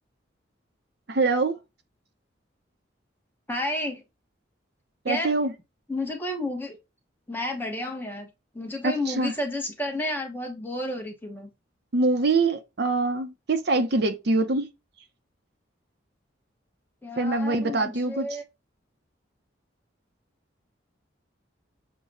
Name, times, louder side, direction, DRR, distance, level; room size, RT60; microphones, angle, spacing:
voice 1, 1.1-1.6 5.0-5.5 8.8-9.3 11.9-14.7 17.2-18.3, right 3 dB, 55° right, 0.7 m, -24 dB
voice 2, 3.5-4.0 5.1-5.4 5.9-6.8 7.3-8.3 8.5-11.5 17.0-18.4, left 1 dB, 10° left, 0.9 m, -31 dB
6.4 x 2.2 x 2.5 m
head